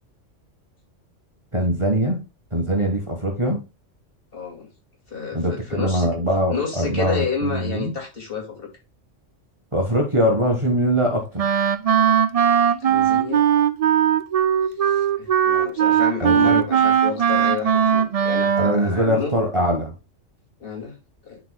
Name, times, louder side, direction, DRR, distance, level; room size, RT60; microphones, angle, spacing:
voice 1, 1.5-2.2 2.5-3.6 5.3-7.9 9.7-11.4 16.2-16.6 18.6-19.9, equal, 25° right, 1.5 m, -22 dB
voice 2, 4.3-4.7 5.1-6.1 6.5-8.7 12.8-13.4 14.8-19.3 20.6-21.0 21.2-21.4, left 5 dB, 50° left, 2.5 m, -30 dB
Wind instrument woodwind instrument, 11.4-18.9, right 9 dB, 55° right, 0.4 m, -19 dB
10.5 x 4.7 x 2.2 m
omnidirectional pair, 1.3 m